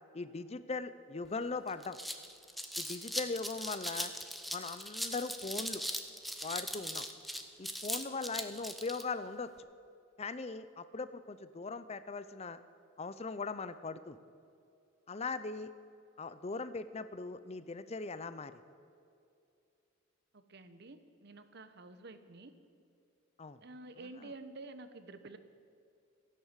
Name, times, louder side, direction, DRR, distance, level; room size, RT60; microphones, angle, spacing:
voice 1, 0.1-2.0 2.8-4.1 4.5-5.8 6.4-7.1 7.6-9.5 10.2-12.6 13.0-14.2 15.1-15.7 16.2-18.6 23.4-23.6 24.2-24.3, left 4 dB, 30° left, 13 dB, 0.6 m, -40 dB
sound 1, 1.3-1.4 1.7-9.0, equal, ahead, 0.8 m, -40 dB
voice 2, 20.3-22.5 23.6-25.4, right 2 dB, 55° right, 10 dB, 1.1 m, -50 dB
15.0 x 11.0 x 8.2 m, 2.5 s
head